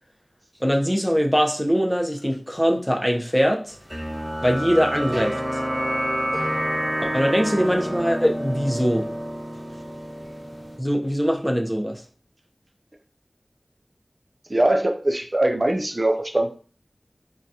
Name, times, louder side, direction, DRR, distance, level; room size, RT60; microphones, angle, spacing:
voice 1, 0.6-3.8 4.4-5.6 7.1-9.1 10.8-12.0, equal, ahead, 1 dB, 0.6 m, -22 dB
sound 1, 3.9-10.8, equal, 25° right, 1.1 m, -28 dB
voice 2, 14.5-16.6, right 1 dB, 50° right, 4 dB, 0.4 m, -22 dB
3.9 x 2.3 x 2.7 m, 0.40 s
wide cardioid pair, 45°, 0 cm